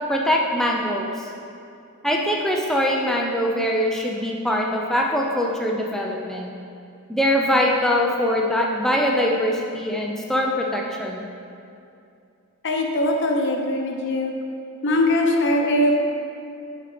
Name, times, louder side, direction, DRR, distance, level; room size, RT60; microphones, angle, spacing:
voice 1, 0.1-1.1 2.0-6.5 7.1-11.2 14.9-15.0, left 1 dB, ahead, -1 dB, 0.4 m, -22 dB
voice 2, 12.6-14.3 14.8-16.0, left 1 dB, 55° left, 1 dB, 0.9 m, -21 dB
7.8 x 4.4 x 5.0 m, 2.6 s
head